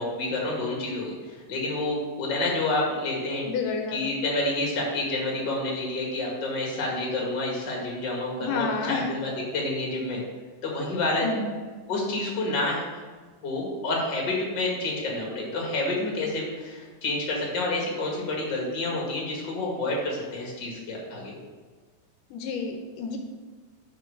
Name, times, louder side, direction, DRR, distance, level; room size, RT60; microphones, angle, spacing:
voice 1, 0.0-3.5 3.9-10.2 10.6-11.3 11.9-12.8 13.4-21.3, left 2 dB, 40° left, -2 dB, 2.1 m, -29 dB
voice 2, 3.5-4.0 8.4-9.1 11.2-11.5 22.3-23.2, left 5 dB, 80° left, 4 dB, 2.2 m, -30 dB
6.2 x 5.2 x 6.4 m, 1.4 s
omnidirectional pair, 3.8 m